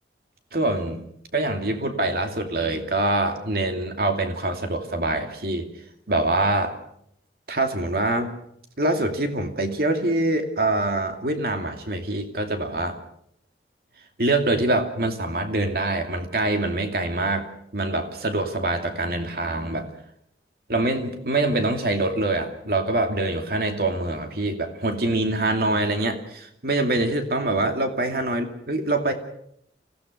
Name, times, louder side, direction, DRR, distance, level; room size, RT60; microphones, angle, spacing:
voice 1, 0.5-1.0 1.3-5.7 6.1-6.8 7.5-8.3 8.8-13.0 14.2-19.9 20.7-29.1, right 2 dB, 55° right, 5 dB, 2.6 m, -24 dB
26.0 x 16.5 x 6.6 m, 0.72 s
head